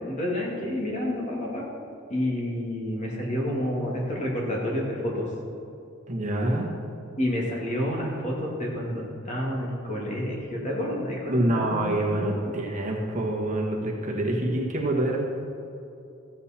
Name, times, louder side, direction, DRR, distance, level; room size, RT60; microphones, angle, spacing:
voice 1, 0.0-1.7 2.1-5.3 7.2-12.5, left 1 dB, 35° left, -3 dB, 2.3 m, -29 dB
voice 2, 6.1-6.7 11.3-15.2, right 1 dB, 35° right, -1 dB, 1.4 m, -26 dB
14.0 x 8.2 x 4.4 m, 2.7 s
head